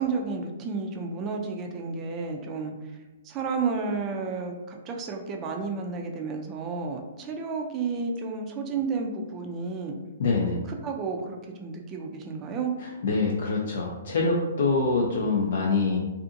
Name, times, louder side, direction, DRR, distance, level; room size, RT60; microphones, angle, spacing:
voice 1, 0.0-2.7 3.2-10.0 10.7-12.7, right 4 dB, 25° right, 2 dB, 0.4 m, -31 dB
voice 2, 10.2-10.6 12.8-16.0, left 3 dB, 65° left, -2 dB, 0.4 m, -25 dB
2.6 x 2.4 x 2.6 m, 1.1 s
hypercardioid pair, 135°, 0 cm